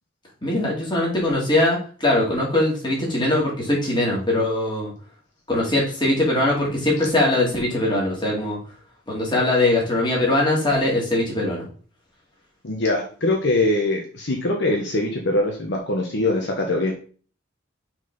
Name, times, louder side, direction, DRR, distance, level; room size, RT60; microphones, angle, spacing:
voice 1, 0.4-4.9 5.5-8.6 9.1-11.6, left 1 dB, 25° left, -3 dB, 2.7 m, -21 dB
voice 2, 12.6-17.0, left 2 dB, 60° left, 1 dB, 1.2 m, -22 dB
6.0 x 4.2 x 5.4 m, 0.42 s
head